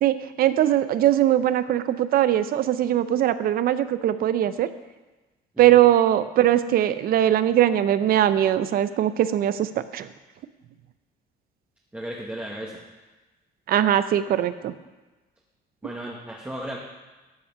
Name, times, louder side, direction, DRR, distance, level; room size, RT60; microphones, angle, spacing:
voice 1, 0.0-4.7 5.6-10.1 13.7-14.7, right 12 dB, 60° right, 13 dB, 0.6 m, -21 dB
voice 2, 11.9-12.8 15.8-16.8, right 1 dB, 10° right, -3 dB, 1.4 m, -35 dB
12.5 x 5.6 x 5.6 m, 1.2 s
cardioid pair, 110°, 17 cm